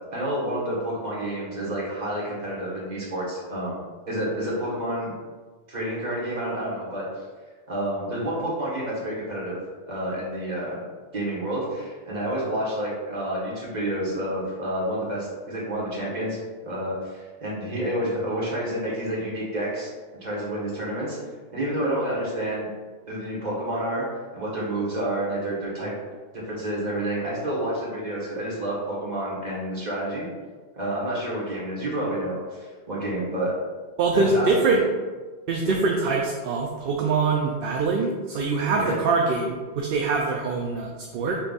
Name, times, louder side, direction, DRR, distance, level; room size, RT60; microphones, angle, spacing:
voice 1, 0.1-3.8 4.1-5.1 5.7-7.1 7.7-9.6 9.9-10.8 11.1-19.9 20.2-21.2 21.5-22.7 23.1-24.1 24.3-25.9 26.5-30.3 30.7-33.5 34.1-34.8 35.6-35.8 38.8-38.9, right 1 dB, 40° right, -6 dB, 1.5 m, -29 dB
voice 2, 34.0-34.8 35.5-41.4, right 4 dB, 65° right, 0 dB, 0.7 m, -24 dB
5.5 x 2.4 x 4.0 m, 1.4 s
omnidirectional pair, 1.1 m